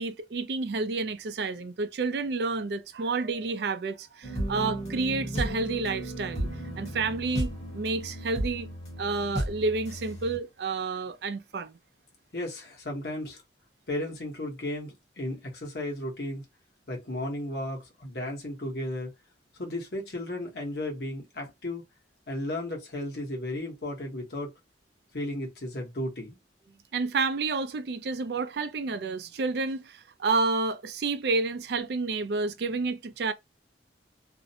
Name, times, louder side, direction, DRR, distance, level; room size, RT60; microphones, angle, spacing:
voice 1, 0.0-6.5 6.8-8.7 9.0-11.8 26.9-33.3, right 3 dB, 65° right, 0.4 m, -30 dB
sound 1, 4.2-10.4, equal, 35° left, 1.0 m, -34 dB
voice 2, 12.3-13.4 13.9-16.4 16.9-19.1 19.5-21.8 22.3-24.5 25.1-26.4, left 1 dB, 60° left, 1.0 m, -34 dB
2.5 x 2.1 x 2.7 m
head